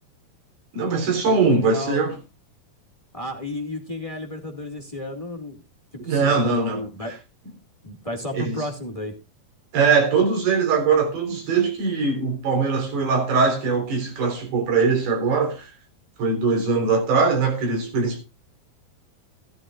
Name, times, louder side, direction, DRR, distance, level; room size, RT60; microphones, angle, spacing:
voice 1, 0.7-2.2 6.0-6.8 8.3-8.6 9.7-15.7 16.2-18.2, right 4 dB, 85° right, 5.6 m, -21 dB
voice 2, 1.3-2.0 3.1-5.6 6.0-7.1 7.8-9.2, left 1 dB, 20° left, 0.8 m, -32 dB
15.0 x 13.0 x 2.5 m
omnidirectional pair, 4.4 m